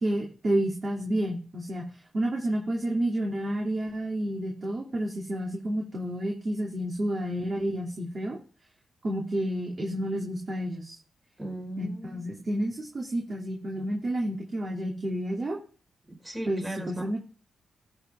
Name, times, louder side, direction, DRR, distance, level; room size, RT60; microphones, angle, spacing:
voice 1, 0.0-1.9 2.1-8.4 9.0-11.0 11.8-15.6 16.5-17.2, right 1 dB, 50° right, -1 dB, 2.9 m, -30 dB
voice 2, 11.4-12.2 16.1-17.2, right 1 dB, 20° right, 2 dB, 5.0 m, -37 dB
13.5 x 8.4 x 3.7 m, 0.37 s
supercardioid pair, 45°, 0 cm